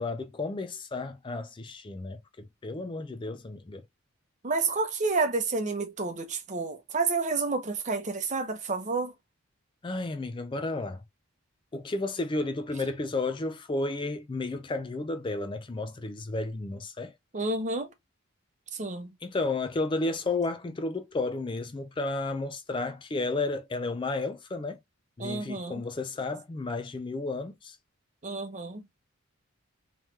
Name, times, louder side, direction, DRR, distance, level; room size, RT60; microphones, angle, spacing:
voice 1, 0.0-3.8 9.8-11.0 11.7-17.1 19.2-24.8 25.2-27.8, left 3 dB, 25° left, 0.3 m, -32 dB
voice 2, 4.4-9.1 17.3-17.9 18.7-19.1 25.2-25.8 28.2-28.8, right 3 dB, 35° right, 0.7 m, -30 dB
3.5 x 3.1 x 3.0 m
head